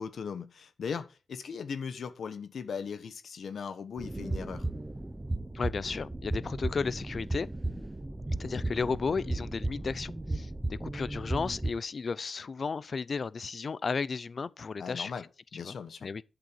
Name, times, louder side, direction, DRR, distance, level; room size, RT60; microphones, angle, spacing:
voice 1, 0.0-4.7 14.8-15.2 15.5-16.1, left 6 dB, 55° left, 1.3 m, -38 dB
sound 1, 4.0-11.7, right 2 dB, 10° right, 0.8 m, -35 dB
voice 2, 5.5-7.5 8.4-15.1 15.6-16.2, left 5 dB, 35° left, 0.6 m, -34 dB
12.0 x 6.8 x 4.6 m
wide cardioid pair, 165°, 0 cm